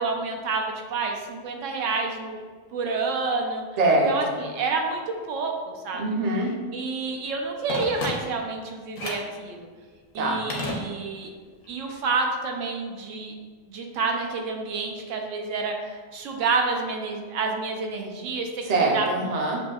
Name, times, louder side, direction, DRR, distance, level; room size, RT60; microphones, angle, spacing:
voice 1, 0.0-2.4 2.7-3.6 4.1-5.0 5.3-6.0 6.7-9.7 10.1-11.3 11.7-13.3 13.7-19.1, right 4 dB, 80° right, 2 dB, 1.0 m, -29 dB
voice 2, 3.8-4.5 6.0-6.5 10.1-10.4 18.6-19.6, right 2 dB, 45° right, 0 dB, 0.6 m, -23 dB
Telephone, 7.7-8.6 9.0-9.4 10.5-11.4 11.6-11.7, left 2 dB, 70° left, 1.1 m, -33 dB
6.9 x 2.6 x 2.3 m, 1.5 s
omnidirectional pair, 1.3 m